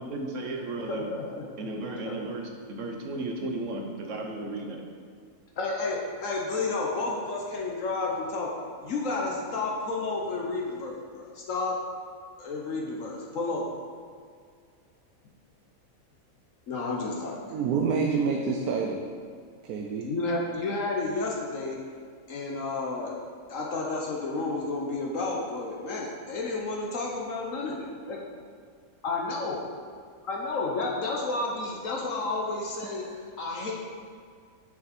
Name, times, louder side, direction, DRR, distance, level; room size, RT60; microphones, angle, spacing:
voice 1, 0.0-1.1 1.6-4.8, right 2 dB, 60° right, 2 dB, 1.2 m, -34 dB
voice 2, 0.9-1.4 2.1-2.2 5.6-8.5 8.8-11.7 12.4-13.6 16.7-17.4 20.0-21.8 22.3-23.1 23.5-28.2 29.0-29.6 30.2-33.0 33.4-33.7, left 3 dB, 65° left, -2 dB, 1.2 m, -31 dB
voice 3, 17.5-19.0 19.7-20.1 32.8-33.2, right 5 dB, 90° right, 1 dB, 1.2 m, -28 dB
6.9 x 6.6 x 4.2 m, 2.1 s
omnidirectional pair, 1.5 m